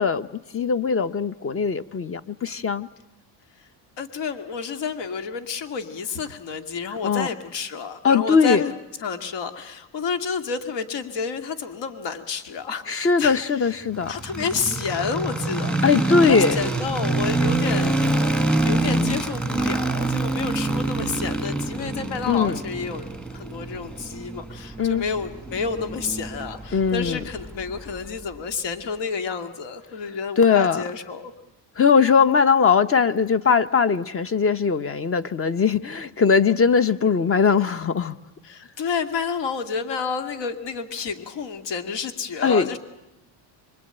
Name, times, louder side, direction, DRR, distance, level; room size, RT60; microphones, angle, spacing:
voice 1, 0.0-2.9 7.0-7.3 8.0-8.6 12.9-14.1 15.8-16.6 22.3-22.6 24.8-25.1 26.7-27.2 30.4-30.8 31.8-38.2 42.4-42.8, left 5 dB, 25° left, 14 dB, 1.0 m, -20 dB
voice 2, 4.0-8.7 9.0-13.7 14.1-15.7 16.2-18.0 18.6-23.1 23.3-31.3 38.4-42.8, left 5 dB, 60° left, 8 dB, 2.3 m, -30 dB
sound 1, 13.9-28.1, right 2 dB, ahead, 1.4 m, -26 dB
25.0 x 23.0 x 9.0 m, 0.96 s
cardioid pair, 120°, 50 cm